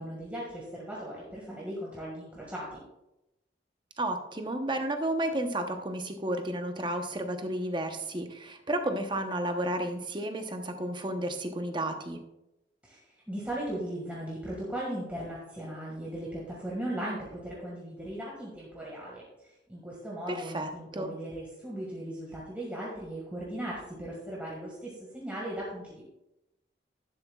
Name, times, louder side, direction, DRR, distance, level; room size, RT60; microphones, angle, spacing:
voice 1, 0.0-2.8 12.8-26.0, right 1 dB, 10° right, -6 dB, 1.8 m, -38 dB
voice 2, 4.0-12.2 20.3-21.1, right 1 dB, 25° right, 6 dB, 0.9 m, -32 dB
11.5 x 11.0 x 2.4 m, 0.91 s
head